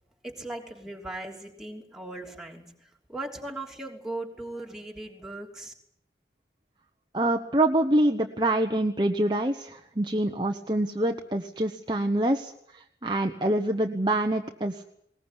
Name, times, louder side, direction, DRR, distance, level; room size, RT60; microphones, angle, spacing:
voice 1, 0.2-5.7, right 2 dB, 5° right, 1 dB, 3.1 m, -38 dB
voice 2, 7.1-14.8, right 1 dB, 25° right, 4 dB, 1.1 m, -26 dB
20.5 x 19.5 x 9.8 m, 0.71 s
head